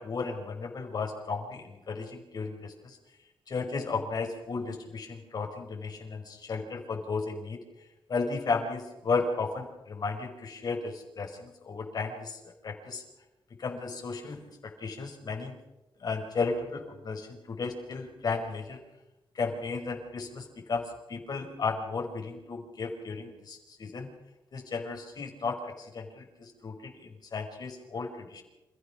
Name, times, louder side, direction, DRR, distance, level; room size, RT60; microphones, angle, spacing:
voice 1, 0.0-3.0 3.5-7.6 8.1-13.0 13.6-15.5 16.0-18.8 19.3-24.1 24.5-28.4, left 4 dB, 50° left, 3 dB, 5.1 m, -34 dB
28.0 x 15.5 x 6.3 m, 0.97 s
wide cardioid pair, 130°, 9 cm